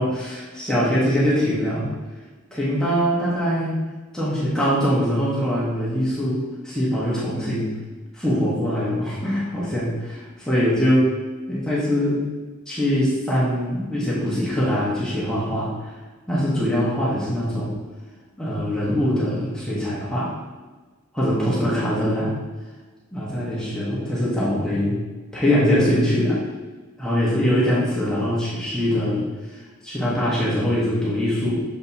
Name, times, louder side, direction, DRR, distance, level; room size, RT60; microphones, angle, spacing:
voice 1, 0.0-1.9 2.5-3.8 4.1-7.8 8.1-10.2 10.5-11.1 11.5-12.2 12.7-15.9 16.3-17.8 18.4-20.3 21.1-22.3 23.1-25.0 25.3-26.4 27.0-29.3 29.5-31.6, equal, 5° left, -8 dB, 1.2 m, -22 dB
6.8 x 5.1 x 2.8 m, 1.3 s
head